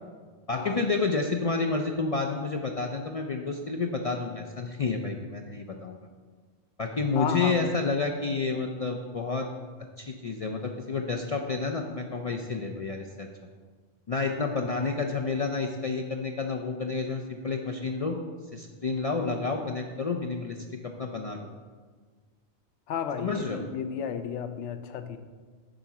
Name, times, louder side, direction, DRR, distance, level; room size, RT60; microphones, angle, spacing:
voice 1, 0.5-6.1 6.8-9.5 10.0-13.3 14.1-18.2 18.5-20.6 21.0-21.5 23.2-23.6, left 4 dB, 55° left, 2 dB, 0.4 m, -30 dB
voice 2, 7.2-7.7 22.9-25.2, left 7 dB, 85° left, 9 dB, 0.9 m, -33 dB
8.8 x 3.9 x 5.9 m, 1.5 s
omnidirectional pair, 1.2 m